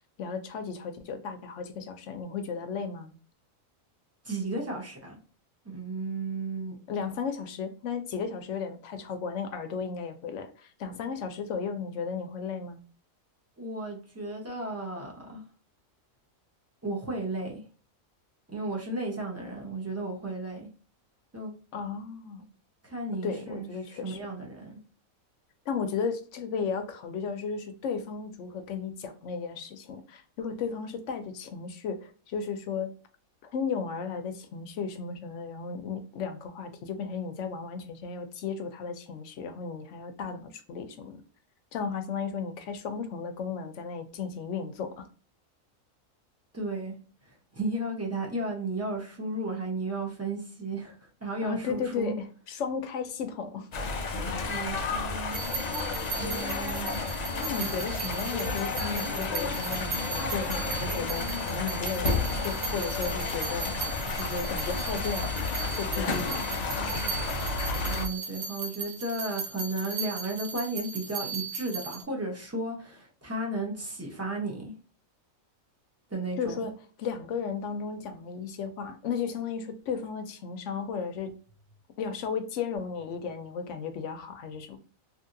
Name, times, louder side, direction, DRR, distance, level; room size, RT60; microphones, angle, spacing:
voice 1, 0.2-3.2 6.9-12.8 21.7-22.4 23.2-24.2 25.7-32.9 33.4-41.2 41.7-45.1 51.4-53.8 57.4-63.7 64.1-65.3 65.6-66.5 76.4-81.3 82.0-84.8, left 6 dB, 70° left, 8 dB, 0.8 m, -34 dB
voice 2, 4.2-5.2 5.6-6.8 13.6-15.4 16.8-17.6 18.5-20.7 21.3-21.5 22.8-24.8 46.5-47.0 47.5-52.1 54.5-55.4 56.1-56.9 57.5-57.7 67.7-74.7 76.1-76.7, right 2 dB, 15° right, -2 dB, 0.6 m, -34 dB
sound 1, 53.7-68.1, left 3 dB, 85° left, 0.3 m, -31 dB
sound 2, 55.3-72.0, right 5 dB, 80° right, 1.1 m, -37 dB
3.0 x 2.7 x 2.5 m, 0.39 s
omnidirectional pair, 1.4 m